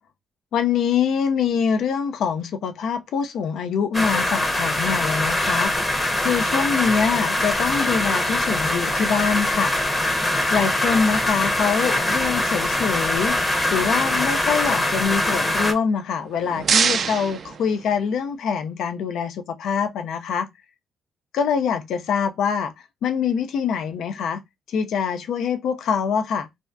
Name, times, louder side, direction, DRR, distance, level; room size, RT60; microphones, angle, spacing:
voice 1, 0.5-5.7 6.2-9.7 10.5-13.4 13.7-20.5 21.3-22.7 23.0-24.4 24.7-26.5, left 6 dB, 75° left, 0.4 m, -24 dB
sound 1, 3.9-15.7, left 1 dB, 15° left, 0.7 m, -23 dB
sound 2, 16.1-18.3, right 6 dB, 50° right, 0.4 m, -25 dB
2.6 x 2.2 x 3.4 m
cardioid pair, 90°, 0 cm